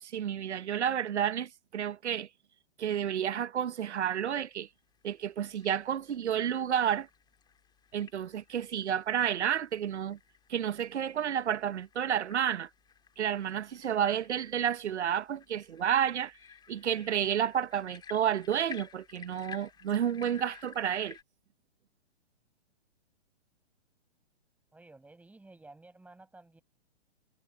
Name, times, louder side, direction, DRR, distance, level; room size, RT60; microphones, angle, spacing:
voice 1, 0.0-2.3 2.8-4.7 5.0-7.1 7.9-10.2 10.5-12.7 13.2-16.3 16.7-21.2, right 9 dB, 80° right, 0.9 m, -30 dB
sound 1, 4.8-21.2, left 7 dB, 15° left, 2.8 m, -54 dB
voice 2, 24.7-26.6, right 2 dB, 5° right, 6.5 m, -54 dB
hypercardioid pair, 140°, 33 cm